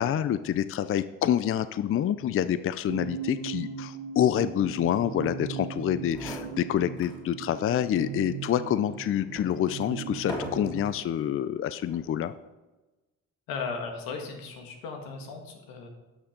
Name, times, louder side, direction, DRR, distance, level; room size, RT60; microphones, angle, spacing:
voice 1, 0.0-12.3, left 10 dB, 40° left, 14 dB, 0.4 m, -27 dB
sound 1, 2.9-11.0, right 8 dB, 85° right, 0.9 m, -38 dB
sound 2, 5.8-5.9 6.1-7.2 7.7-7.8 8.4-11.0 11.8-12.2, left 1 dB, 10° left, 2.8 m, -40 dB
voice 2, 13.5-15.9, left 4 dB, 90° left, 3 dB, 1.9 m, -36 dB
12.0 x 5.9 x 5.1 m, 1.1 s
cardioid pair, 80°, 34 cm